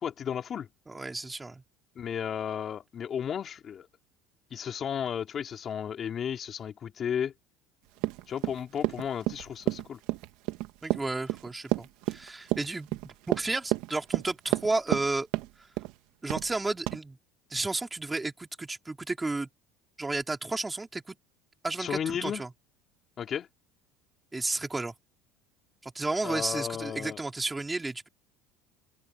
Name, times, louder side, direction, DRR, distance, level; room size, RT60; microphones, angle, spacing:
voice 1, 0.0-0.7 2.0-3.9 4.5-7.3 8.3-10.0 21.8-22.4 23.2-23.5 26.2-27.2, left 8 dB, 35° left, 4.1 m, -33 dB
voice 2, 0.9-1.6 10.8-15.3 16.2-17.2 17.5-19.5 20.0-21.2 21.6-22.5 24.3-24.9 25.8-28.1, right 2 dB, 10° right, 3.9 m, -32 dB
Run, 8.0-15.1 15.3-15.9 16.3-16.5 16.9-17.0, right 18 dB, 70° right, 1.6 m, -30 dB
open air
cardioid pair, 135°, 0 cm